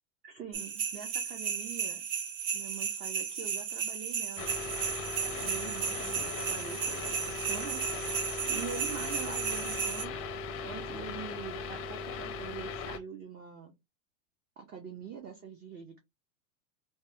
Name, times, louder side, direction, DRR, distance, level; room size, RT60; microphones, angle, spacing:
voice 1, 0.2-2.0 2.5-4.5 5.4-7.8 8.5-10.2 10.6-13.7 14.6-16.0, right 7 dB, 25° right, 0.5 m, -44 dB
sound 1, 0.5-10.0, right 7 dB, 60° right, 1.1 m, -34 dB
sound 2, 4.4-13.0, left 4 dB, 35° left, 0.5 m, -38 dB
2.8 x 2.1 x 3.3 m
supercardioid pair, 130°, 40 cm